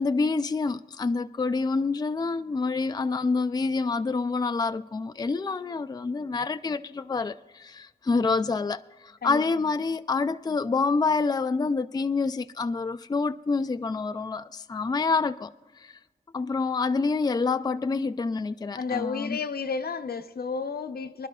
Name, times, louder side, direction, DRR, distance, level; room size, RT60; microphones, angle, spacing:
voice 1, 0.0-16.0 16.3-19.4, left 4 dB, 25° left, 0.3 m, -27 dB
voice 2, 18.8-21.3, left 5 dB, 80° left, 0.6 m, -32 dB
24.5 x 11.5 x 2.3 m
wide cardioid pair, 90°, 16 cm